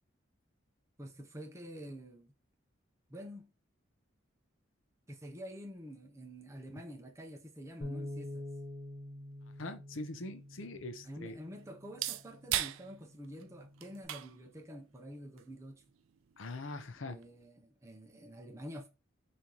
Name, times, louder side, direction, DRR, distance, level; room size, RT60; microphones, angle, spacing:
voice 1, 1.0-2.3 3.1-3.5 5.1-8.5 11.0-15.8 17.0-18.9, equal, 15° right, 0.8 m, -48 dB
Bass guitar, 7.8-14.0, left 1 dB, 30° left, 1.2 m, -46 dB
sound 1, 9.5-17.5, right 13 dB, 85° right, 0.4 m, -43 dB
voice 2, 9.6-11.4 16.4-17.2, left 2 dB, 75° left, 0.7 m, -42 dB
5.8 x 2.8 x 3.1 m
head